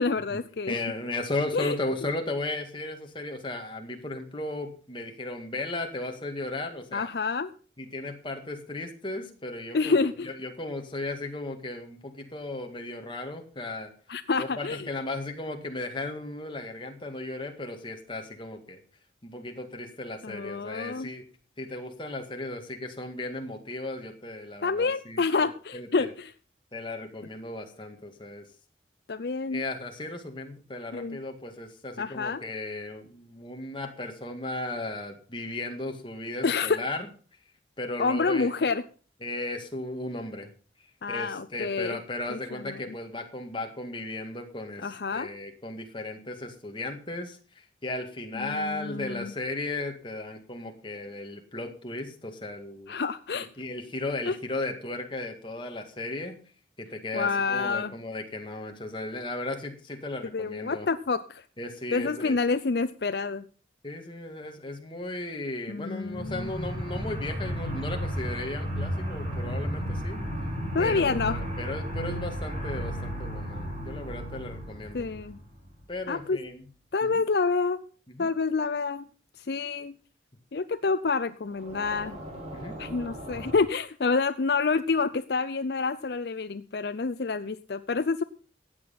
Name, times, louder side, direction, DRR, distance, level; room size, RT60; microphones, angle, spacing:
voice 1, 0.0-0.8 1.5-1.8 6.9-7.5 9.7-10.3 14.1-14.9 20.2-21.1 24.6-26.3 29.1-29.6 30.9-31.2 32.0-32.4 36.4-36.8 38.0-38.8 41.0-42.0 42.3-42.8 44.8-45.3 48.4-49.3 52.9-53.5 54.3-54.4 57.1-57.9 60.3-61.4 61.9-63.5 65.7-66.5 70.7-71.4 74.9-75.4 76.1-76.4 76.9-77.8 78.2-79.1 79.4-79.9 80.5-82.2 82.8-88.2, left 4 dB, 60° left, 12 dB, 0.5 m, -28 dB
voice 2, 0.7-7.1 7.8-13.9 14.4-18.8 19.2-21.3 21.6-26.1 26.7-28.5 29.5-37.1 37.8-38.7 39.2-40.5 41.1-53.0 53.3-56.4 56.8-60.9 61.6-62.4 63.8-70.2 70.8-75.1 75.9-76.6 77.0-77.2 78.1-78.3 82.5-82.8, left 2 dB, 25° left, 4 dB, 2.0 m, -36 dB
sound 1, 66.0-76.0 81.5-83.6, equal, 35° right, 5.8 m, -34 dB
15.0 x 8.7 x 5.7 m, 0.41 s
head